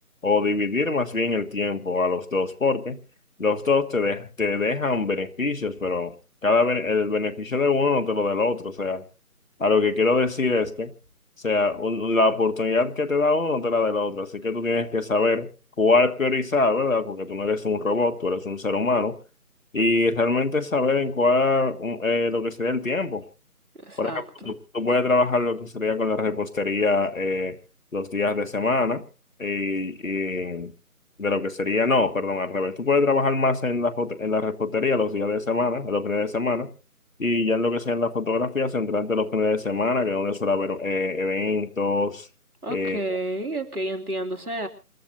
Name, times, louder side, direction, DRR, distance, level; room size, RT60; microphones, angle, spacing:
voice 1, 0.2-3.0 3.4-6.1 6.4-9.0 9.6-10.9 11.4-15.5 15.8-19.2 19.7-23.2 24.0-27.6 27.9-29.0 29.4-30.7 31.2-36.7 37.2-42.3 42.7-43.0, left 3 dB, 60° left, 1.7 m, -24 dB
voice 2, 23.8-24.5 42.6-44.7, right 1 dB, 80° right, 3.3 m, -31 dB
28.0 x 13.0 x 2.8 m
figure-of-eight pair, 170°, 44 cm